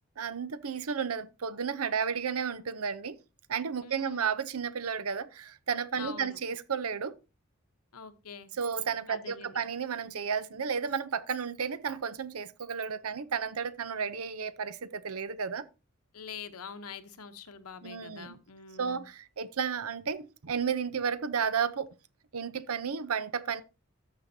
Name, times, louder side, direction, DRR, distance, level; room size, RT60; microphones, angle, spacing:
voice 1, 0.2-3.2 3.5-7.1 8.6-15.7 17.8-18.4 18.8-21.9 22.3-23.6, right 6 dB, 80° right, 0.7 m, -33 dB
voice 2, 3.8-4.3 6.0-6.4 7.9-8.5 9.1-9.6 16.1-19.0, left 5 dB, 90° left, 1.1 m, -45 dB
13.0 x 6.6 x 2.8 m
head